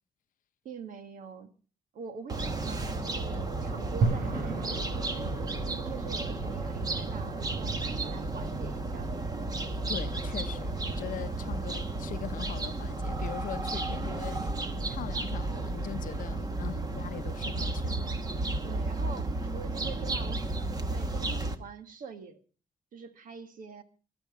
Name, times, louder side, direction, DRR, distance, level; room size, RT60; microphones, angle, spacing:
voice 1, 0.7-1.5 1.9-5.3 5.7-9.1 18.6-22.4 22.9-23.8, right 6 dB, 65° right, 1.7 m, -45 dB
sound 1, 2.3-21.5, right 2 dB, 25° right, 1.3 m, -33 dB
sound 2, 4.0-14.3, right 3 dB, 90° right, 4.1 m, -38 dB
voice 2, 9.9-18.1, left 10 dB, 65° left, 0.7 m, -41 dB
15.5 x 12.5 x 5.1 m
wide cardioid pair, 170°, 15 cm